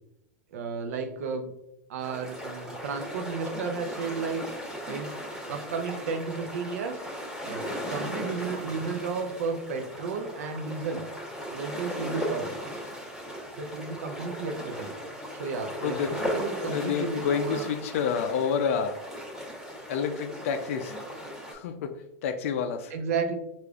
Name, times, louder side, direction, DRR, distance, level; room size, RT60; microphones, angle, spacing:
voice 1, 0.5-1.5 1.9-4.4 4.9-5.1 5.5-11.0 11.5-12.5 13.6-14.9 15.3-17.7 22.9-23.3, right 5 dB, 75° right, 6 dB, 0.5 m, -33 dB
sound 1, 2.0-21.5, equal, 10° right, 1.0 m, -37 dB
voice 2, 15.8-16.1 16.7-19.0 19.9-20.9 21.5-21.9 22.2-22.9, left 7 dB, 65° left, 7 dB, 0.4 m, -28 dB
4.9 x 2.4 x 2.3 m, 0.85 s
supercardioid pair, 160°, 8 cm